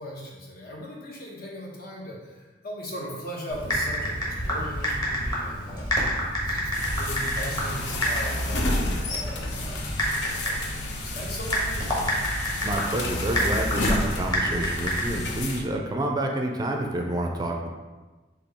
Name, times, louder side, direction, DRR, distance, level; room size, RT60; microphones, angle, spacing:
voice 1, 0.0-5.9 6.4-12.2, equal, 60° left, -3 dB, 1.0 m, -39 dB
Typing, 3.5-15.4, equal, 25° left, 1.1 m, -29 dB
sound 1, 6.7-15.6, left 1 dB, 75° left, 0.6 m, -30 dB
voice 2, 12.6-17.7, right 1 dB, 25° right, 2 dB, 0.4 m, -28 dB
4.5 x 2.8 x 4.1 m, 1.2 s
head